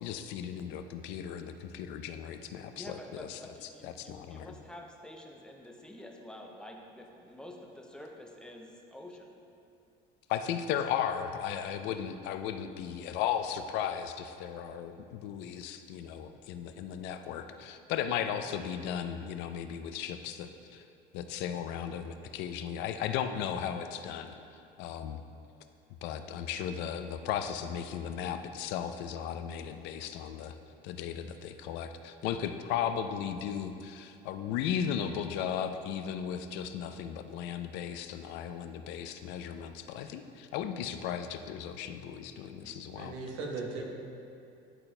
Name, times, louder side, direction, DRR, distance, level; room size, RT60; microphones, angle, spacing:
voice 1, 0.0-3.4 3.8-4.5 10.3-20.8 21.1-24.3 24.8-25.2 26.0-30.5 30.8-43.1, left 8 dB, 70° left, 8 dB, 0.4 m, -36 dB
voice 2, 2.7-9.4, left 1 dB, 5° left, 0 dB, 0.5 m, -48 dB
voice 3, 42.9-43.9, right 3 dB, 80° right, 0 dB, 1.0 m, -38 dB
11.0 x 4.1 x 2.2 m, 2.6 s
cardioid pair, 135°, 19 cm